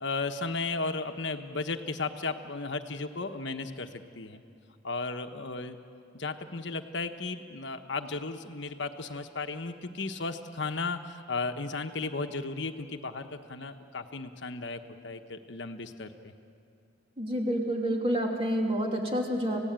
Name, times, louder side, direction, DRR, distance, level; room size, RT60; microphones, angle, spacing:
voice 1, 0.0-4.4 4.8-5.8 6.1-16.3, left 3 dB, 60° left, 7 dB, 1.1 m, -35 dB
voice 2, 17.2-19.6, equal, 30° right, 1 dB, 2.8 m, -28 dB
28.0 x 17.0 x 9.0 m, 2.5 s
head